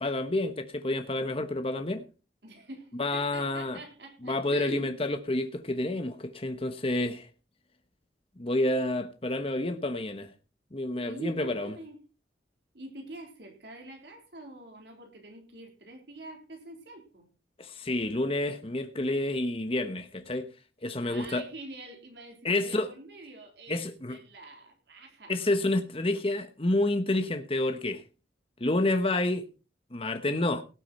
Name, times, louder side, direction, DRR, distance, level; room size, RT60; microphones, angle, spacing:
voice 1, 0.0-2.0 3.0-3.8 4.2-7.3 8.4-10.3 10.7-11.7 17.6-20.5 20.8-21.4 22.4-22.9 23.7-24.2 25.3-28.0 28.6-29.5 29.9-30.6, left 2 dB, 30° left, 1.1 m, -29 dB
voice 2, 2.4-4.9 11.0-12.0 12.7-17.3 21.0-25.4, right 2 dB, 65° right, 3.8 m, -45 dB
18.0 x 8.6 x 4.3 m
head